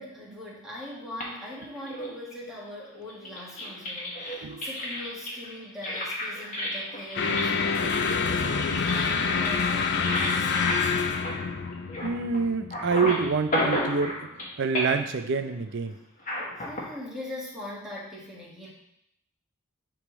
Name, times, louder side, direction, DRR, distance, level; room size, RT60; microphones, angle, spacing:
voice 1, 0.0-10.9 16.6-18.7, left 1 dB, ahead, -6 dB, 1.7 m, -41 dB
sound 1, 1.2-2.5 3.1-12.4 12.7-14.5 14.7-15.2 16.2-16.8, left 1 dB, 35° left, 1.4 m, -32 dB
sound 2, 7.2-13.6, left 5 dB, 55° left, 0.5 m, -27 dB
voice 2, 12.0-15.9, right 5 dB, 60° right, 9 dB, 0.5 m, -27 dB
10.0 x 3.4 x 3.1 m, 0.77 s
head